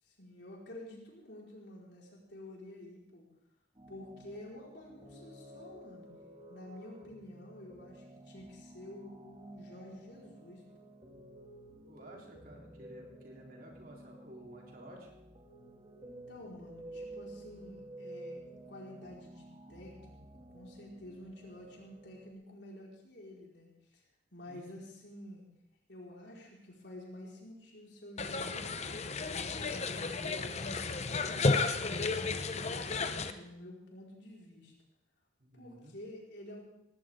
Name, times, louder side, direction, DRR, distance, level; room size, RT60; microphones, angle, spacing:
voice 1, 0.0-3.3 3.9-6.1 6.5-10.9 16.0-20.2 20.5-24.0 24.3-25.5 25.9-29.3 29.9-30.7 31.1-34.7 35.5-36.6, left 1 dB, 65° left, -3 dB, 4.9 m, -50 dB
sound 1, 3.7-22.3, right 1 dB, 30° right, 2.5 m, -52 dB
voice 2, 11.9-15.1 24.5-24.6 30.0-30.5 35.4-35.9, right 1 dB, 50° right, -1 dB, 3.8 m, -52 dB
sound 2, 28.2-33.3, left 3 dB, 35° left, 0.8 m, -33 dB
18.0 x 17.5 x 3.8 m, 0.84 s
head